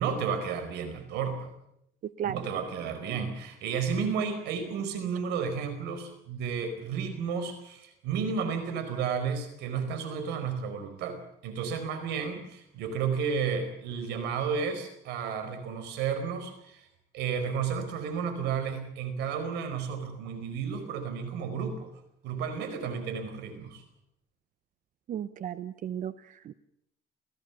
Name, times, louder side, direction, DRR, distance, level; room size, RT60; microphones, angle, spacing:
voice 1, 0.0-1.5 2.2-16.9 17.1-21.9 22.2-23.8, right 6 dB, 90° right, 9 dB, 4.8 m, -32 dB
voice 2, 2.0-2.4 25.1-26.5, right 9 dB, 50° right, 14 dB, 0.8 m, -35 dB
28.0 x 16.5 x 7.2 m, 0.77 s
cardioid pair, 110°, 17 cm